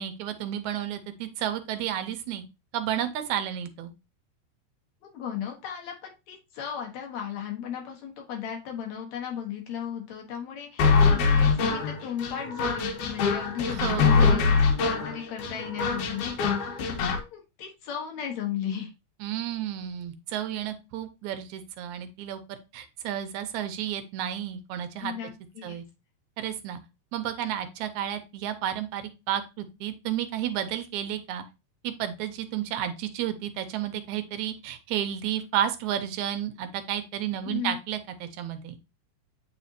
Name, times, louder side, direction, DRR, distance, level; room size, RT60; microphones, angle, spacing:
voice 1, 0.0-2.4 2.7-3.9 13.6-14.6 19.2-25.1 25.6-25.8 26.4-26.8 27.1-31.4 31.8-38.8, right 10 dB, 80° right, 9 dB, 2.0 m, -32 dB
voice 2, 5.1-18.9 25.0-25.8 37.4-37.8, left 9 dB, 65° left, 1 dB, 2.5 m, -35 dB
sound 1, 10.8-17.2, left 5 dB, 85° left, 2.5 m, -23 dB
8.6 x 4.1 x 2.7 m, 0.26 s
omnidirectional pair, 3.5 m